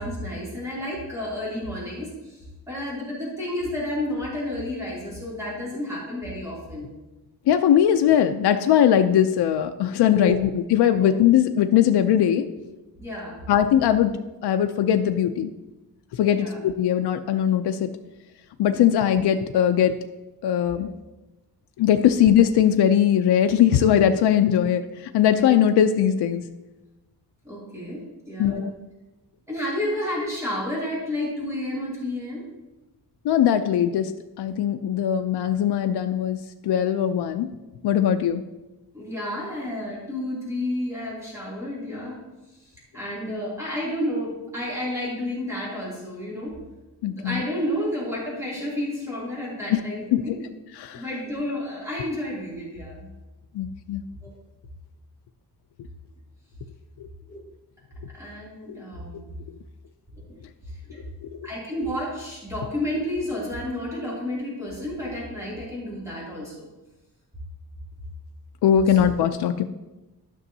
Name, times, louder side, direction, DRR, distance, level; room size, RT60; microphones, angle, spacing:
voice 1, 0.0-6.9 10.0-10.4 11.0-11.1 13.0-13.5 16.3-16.6 27.4-28.7 29.5-32.4 38.9-42.2 42.5-42.6 42.9-46.6 47.1-50.5 50.9-53.1 54.2-54.3 57.3-57.4 58.1-59.3 60.1-60.2 60.7-61.0 61.4-66.6 68.9-69.0, left 1 dB, 5° right, -7 dB, 2.7 m, -31 dB
voice 2, 7.5-12.5 13.5-14.1 14.4-15.5 16.1-17.9 18.6-20.0 20.4-20.9 21.8-26.4 28.4-28.7 33.2-34.1 34.4-36.4 36.6-37.5 37.8-38.4 47.0-47.4 49.7-49.8 50.1-50.4 50.8-51.0 53.5-54.0 58.7-58.8 61.2-61.4 68.6-69.6, left 9 dB, 80° left, 7 dB, 0.5 m, -20 dB
12.5 x 6.0 x 2.7 m, 1.1 s
wide cardioid pair, 165°, 39 cm